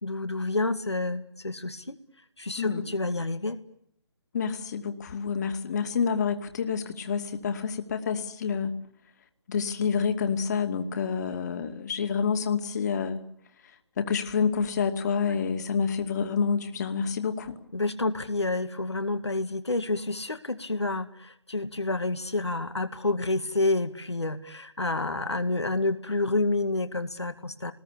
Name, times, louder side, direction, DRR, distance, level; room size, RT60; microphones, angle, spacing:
voice 1, 0.0-2.0 2.4-3.6 17.7-27.7, left 2 dB, 80° left, 8 dB, 2.2 m, -29 dB
voice 2, 4.3-8.8 9.5-13.3 14.0-17.6, left 6 dB, 40° left, 6 dB, 2.6 m, -28 dB
29.5 x 20.5 x 8.5 m, 0.72 s
figure-of-eight pair, 145°, 14 cm